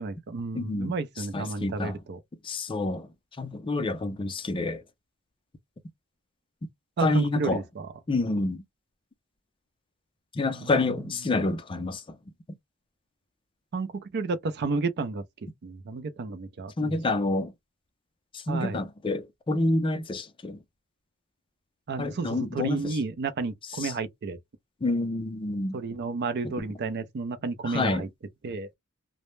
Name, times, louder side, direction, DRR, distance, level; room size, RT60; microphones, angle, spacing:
voice 1, 0.0-2.2 7.0-7.9 10.5-10.7 13.7-15.2 15.6-17.3 18.5-18.8 21.9-24.4 25.7-28.1 28.4-28.7, right 4 dB, 50° right, 0.4 m, -32 dB
voice 2, 0.5-1.0 1.3-2.0 2.4-3.1 3.4-4.8 7.0-7.6 8.1-8.6 10.3-12.0 16.8-17.5 18.3-20.6 22.0-23.0 23.8-23.9 24.8-25.8 27.6-28.1, left 2 dB, 25° left, 0.4 m, -28 dB
2.0 x 2.0 x 3.0 m
head